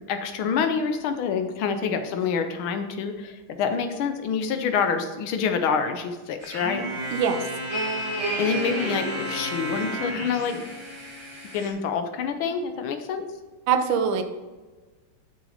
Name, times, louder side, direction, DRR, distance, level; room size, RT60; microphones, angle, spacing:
voice 1, 0.1-6.9 8.4-10.7 11.5-13.3, left 6 dB, 80° left, 7 dB, 1.7 m, -27 dB
sound 1, 6.4-11.7, right 1 dB, 15° right, 1.3 m, -31 dB
voice 2, 7.1-7.4 13.7-14.2, right 7 dB, 70° right, 7 dB, 1.4 m, -22 dB
6.6 x 6.3 x 5.0 m, 1.3 s
omnidirectional pair, 2.3 m